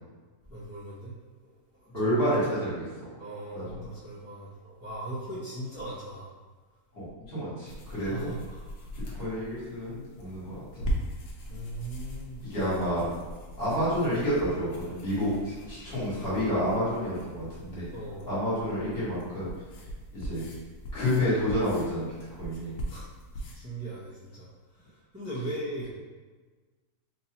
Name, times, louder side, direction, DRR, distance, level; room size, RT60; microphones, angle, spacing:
voice 1, 0.5-1.1 1.4-1.5 1.8-2.3 2.6-2.7 3.1-6.3 8.0-8.6 11.5-12.7 15.7-16.2 17.9-18.2 22.9-23.1 23.5-24.5 24.8-26.0, right 1 dB, 10° right, -12 dB, 0.7 m, -39 dB
voice 2, 1.9-2.8 3.5-3.6 6.9-8.3 9.1-10.8 12.4-13.1 13.6-17.9 18.2-19.5 20.1-20.4 20.9-22.1 22.4-22.7, equal, 40° left, -11 dB, 1.8 m, -29 dB
sound 1, 7.7-23.6, equal, 85° left, 1.2 m, -40 dB
3.8 x 2.7 x 2.9 m, 1.4 s
omnidirectional pair, 1.6 m